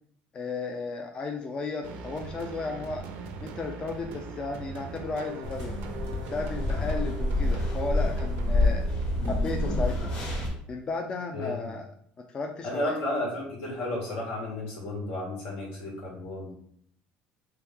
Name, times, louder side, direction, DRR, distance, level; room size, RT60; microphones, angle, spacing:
voice 1, 0.3-3.0 3.4-5.8 6.3-8.9 9.3-10.0 10.7-11.9 12.3-13.0, left 3 dB, 25° left, 2 dB, 0.4 m, -34 dB
sound 1, 1.8-10.6, right 4 dB, 70° right, 0.5 m, -41 dB
sound 2, 5.4-10.5, left 2 dB, 45° left, 1.4 m, -28 dB
voice 2, 11.3-11.7 12.6-16.5, left 1 dB, 80° left, -2 dB, 1.6 m, -33 dB
3.4 x 3.0 x 3.6 m, 0.64 s
cardioid pair, 145°, 3 cm